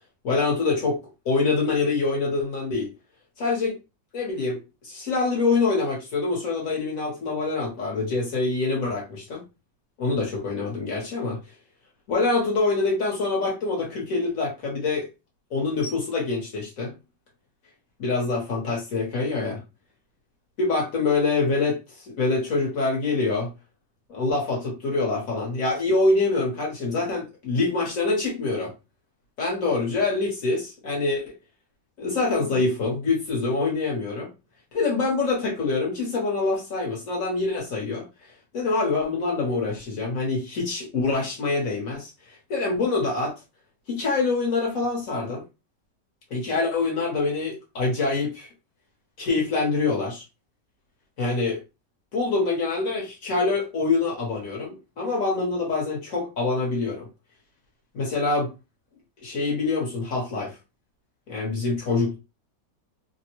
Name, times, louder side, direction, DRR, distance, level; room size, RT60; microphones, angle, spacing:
voice 1, 0.2-1.0 1.2-2.9 3.4-3.8 4.1-9.4 10.0-11.4 12.1-15.1 15.5-16.9 18.0-19.6 20.6-23.5 24.1-28.7 29.4-31.3 32.0-34.3 34.7-38.1 38.5-43.4 43.9-45.4 46.3-48.5 49.2-50.2 51.2-51.6 52.1-57.1 57.9-58.5 59.2-60.6 61.3-62.2, left 3 dB, 55° left, 1.2 m, -25 dB
3.1 x 2.1 x 2.9 m
omnidirectional pair, 1.9 m